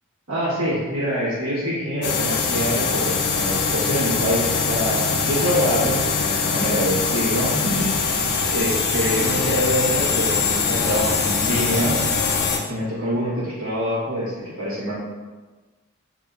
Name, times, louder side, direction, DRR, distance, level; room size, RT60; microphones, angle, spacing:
voice 1, 0.3-12.0 12.7-14.9, equal, 70° right, -11 dB, 1.3 m, -25 dB
washing machine (laundry machine) centrifugation, 2.0-12.6, left 5 dB, 50° left, 0.4 m, -22 dB
3.3 x 2.8 x 2.4 m, 1.3 s
head